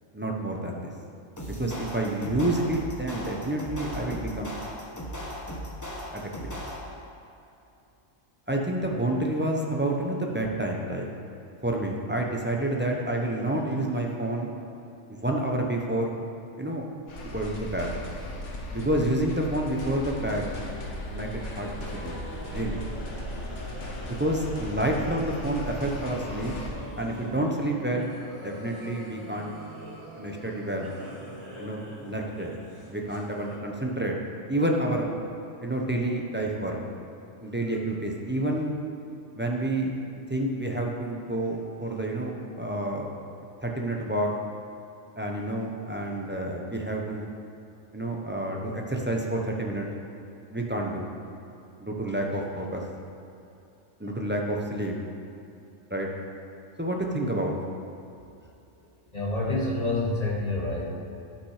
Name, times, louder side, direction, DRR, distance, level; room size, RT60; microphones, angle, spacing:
voice 1, 0.1-0.9 1.5-4.6 6.1-6.5 8.5-11.1 11.6-14.5 15.1-16.1 16.6-16.9 17.2-17.9 18.7-20.5 21.1-22.2 22.5-22.8 24.2-26.5 27.0-28.1 28.4-29.5 30.2-30.9 31.6-32.5 32.9-34.1 34.5-35.1 35.6-36.8 37.4-38.7 39.3-40.0 40.3-43.1 43.6-44.3 45.2-47.3 47.9-49.9 50.5-51.1 51.8-52.8 54.0-54.9 55.9-56.1 56.8-57.6, right 1 dB, 10° right, 0 dB, 0.8 m, -29 dB
sound 1, 1.4-7.1, equal, 15° left, 1.0 m, -37 dB
sound 2, 17.1-26.7, left 1 dB, 70° left, 1.5 m, -37 dB
sound 3, 21.2-33.6, right 1 dB, 75° right, 2.6 m, -43 dB
voice 2, 59.1-60.9, left 2 dB, 30° left, -4 dB, 1.7 m, -27 dB
12.0 x 5.8 x 5.0 m, 2.8 s
omnidirectional pair, 1.3 m